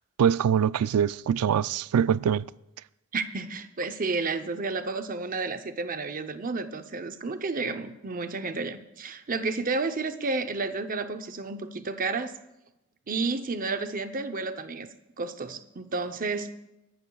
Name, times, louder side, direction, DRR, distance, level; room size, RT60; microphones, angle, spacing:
voice 1, 0.2-2.5, right 8 dB, 85° right, 0.3 m, -23 dB
voice 2, 3.1-12.3 13.1-14.9 15.2-16.5, right 3 dB, 40° right, 0.7 m, -31 dB
24.0 x 12.0 x 2.3 m
head